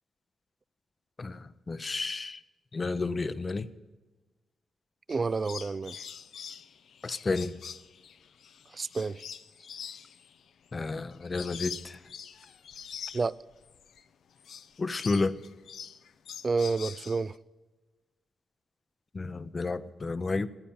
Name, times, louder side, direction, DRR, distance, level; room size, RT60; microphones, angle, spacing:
voice 1, 1.2-2.4 2.7-3.7 7.0-7.5 10.7-12.0 14.8-15.4 19.1-20.5, left 3 dB, 35° left, 0.7 m, -31 dB
sound 1, 5.1-14.0 14.3-17.4, left 7 dB, 75° left, 0.6 m, -45 dB
voice 2, 5.1-6.0 8.7-9.2 13.1-13.3 16.4-17.3, right 4 dB, 35° right, 0.4 m, -29 dB
14.5 x 10.0 x 7.1 m
cardioid pair, 100°, 0 cm